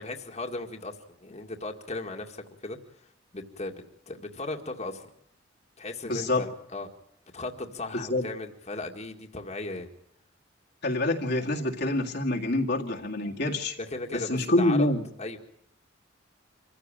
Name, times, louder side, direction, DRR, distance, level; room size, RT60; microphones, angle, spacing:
voice 1, 0.0-2.8 3.3-5.1 5.8-6.9 7.3-9.9 13.8-14.9 15.2-15.4, left 2 dB, 35° left, 3 dB, 2.0 m, -37 dB
voice 2, 6.0-6.5 7.9-8.3 10.8-13.8 14.1-15.0, left 1 dB, 55° left, 1 dB, 2.0 m, -26 dB
25.5 x 15.5 x 8.9 m, 0.72 s
head